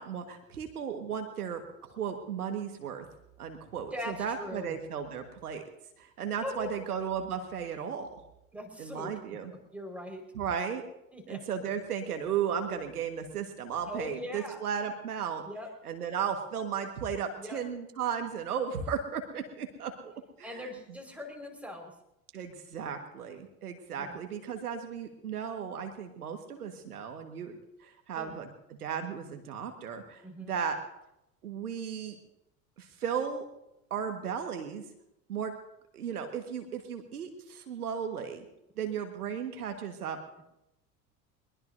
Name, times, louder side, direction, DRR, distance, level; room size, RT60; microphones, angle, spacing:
voice 1, 0.0-1.6 1.9-3.1 3.4-5.6 6.0-8.1 8.8-9.5 10.3-10.8 11.3-15.4 15.8-20.6 22.3-28.5 28.8-30.8 31.4-32.2 32.8-33.4 33.9-34.8 35.3-35.5 35.9-38.4 38.8-40.2, right 7 dB, 80° right, 6 dB, 1.7 m, -35 dB
voice 2, 3.9-4.8 6.4-6.7 8.5-9.1 9.7-10.2 11.1-11.4 13.9-14.6 15.4-15.7 17.4-17.6 20.4-21.9 24.0-24.2 28.1-28.3 30.2-30.5 40.4-40.5, left 1 dB, 5° right, 3 dB, 4.8 m, -40 dB
22.5 x 21.5 x 2.7 m, 0.86 s
figure-of-eight pair, 70°, 45 cm